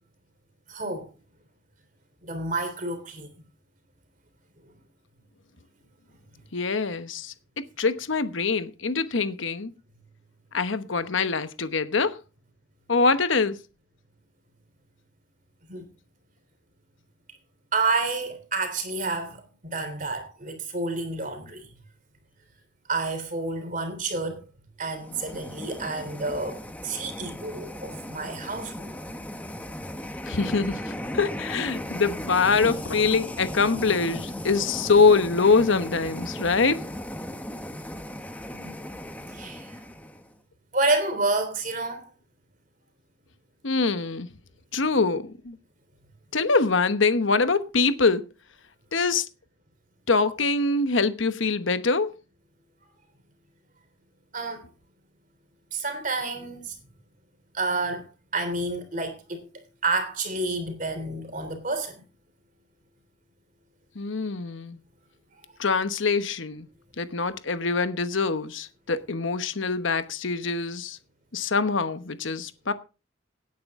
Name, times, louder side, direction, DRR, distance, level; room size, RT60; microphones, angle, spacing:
voice 1, 0.7-1.1 2.2-3.3 15.7-15.9 17.7-21.7 22.9-24.5 24.8-28.9 38.5-38.7 39.3-39.8 40.7-42.1 54.3-54.6 55.7-56.8 57.5-58.1 58.3-59.4 59.8-62.0, right 3 dB, 40° right, 3.3 m, -29 dB
voice 2, 6.5-7.3 7.8-9.7 10.5-12.2 12.9-13.6 30.3-36.8 43.6-44.3 44.7-45.6 46.3-48.2 48.9-49.3 50.1-52.1 64.0-64.8 65.6-66.7 67.0-71.0 71.3-72.7, left 4 dB, 75° left, 1.0 m, -24 dB
sound 1, 24.9-40.3, equal, 10° left, 1.0 m, -37 dB
17.5 x 9.5 x 3.6 m
head